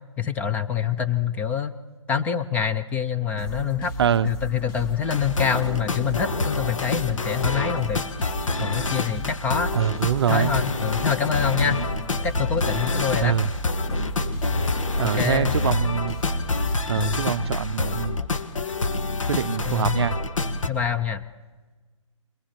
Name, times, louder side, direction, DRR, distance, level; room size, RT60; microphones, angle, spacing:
voice 1, 0.2-1.7 2.1-3.9 4.2-8.0 8.6-9.7 10.3-11.8 12.2-13.4 15.0-15.5 17.0-17.2 19.7-20.1 20.7-21.2, left 7 dB, 10° left, 0.5 m, -26 dB
sound 1, 3.4-18.0, right 1 dB, 40° left, 2.6 m, -35 dB
voice 2, 4.0-4.3 9.7-10.5 11.6-11.8 13.2-13.5 15.0-16.2 16.9-18.2 19.3-20.2, right 9 dB, 55° right, 0.5 m, -24 dB
sound 2, 5.0-20.7, left 2 dB, 80° left, 1.6 m, -27 dB
22.5 x 19.5 x 5.9 m
hypercardioid pair, 145°, 16 cm